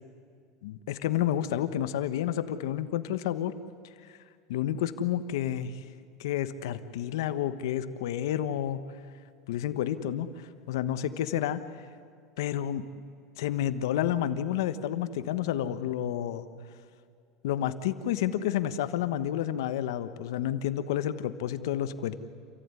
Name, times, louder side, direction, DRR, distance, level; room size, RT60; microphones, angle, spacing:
voice 1, 0.6-3.5 4.1-4.2 4.5-5.8 6.2-8.8 9.5-11.6 12.4-12.9 13.4-16.5 17.4-22.1, left 11 dB, 85° left, 11 dB, 1.3 m, -30 dB
28.0 x 15.0 x 9.8 m, 2.2 s
supercardioid pair, 135°, 2 cm